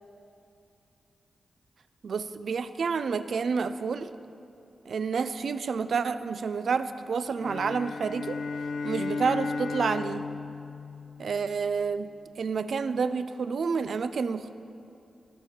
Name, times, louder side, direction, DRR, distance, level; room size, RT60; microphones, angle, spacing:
voice 1, 2.0-4.1 4.9-8.4 8.8-10.2 11.2-14.5, right 5 dB, 75° right, 12 dB, 0.4 m, -29 dB
sound 1, 7.4-11.8, left 4 dB, 85° left, 0.5 m, -35 dB
17.0 x 6.4 x 4.3 m, 2.6 s
cardioid pair, 80°, 0 cm